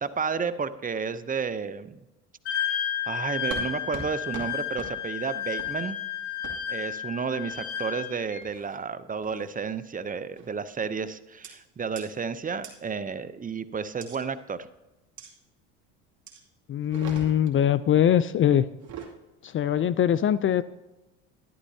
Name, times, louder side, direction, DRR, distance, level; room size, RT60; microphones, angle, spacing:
voice 1, 0.0-2.0 2.5-6.0 6.7-14.7, right 5 dB, 25° right, 14 dB, 0.6 m, -32 dB
Wind instrument woodwind instrument, 2.5-8.4, left 9 dB, 70° left, 2.7 m, -32 dB
sound 1, 3.5-3.7 3.9-4.1 4.3-4.5 4.8-4.9 5.6-5.7 6.4-6.5 7.5-7.9 8.4-8.8 9.2-9.5 10.4-10.6 11.4-11.5 12.0-12.1 12.6-12.7 14.0-14.2 15.2-15.3 16.3-16.4 16.8-17.6 18.7-19.1, right 5 dB, 50° right, 2.5 m, -41 dB
voice 2, 16.7-18.6 19.4-20.6, left 10 dB, 35° left, 16 dB, 0.4 m, -22 dB
13.5 x 11.0 x 2.7 m, 1.0 s
supercardioid pair, 80°, 36 cm